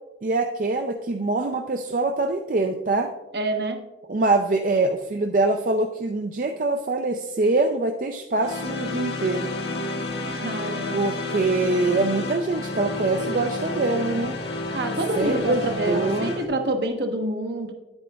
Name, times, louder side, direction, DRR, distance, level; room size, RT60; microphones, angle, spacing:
voice 1, 0.2-3.1 4.1-9.5 10.9-14.4 15.2-16.3, right 2 dB, 45° right, 5 dB, 0.4 m, -24 dB
voice 2, 3.3-3.8 10.3-11.1 14.7-17.7, right 1 dB, 65° right, 4 dB, 1.1 m, -27 dB
sound 1, 8.4-16.5, left 2 dB, 70° left, 1.3 m, -30 dB
10.0 x 8.8 x 2.3 m, 1.1 s
head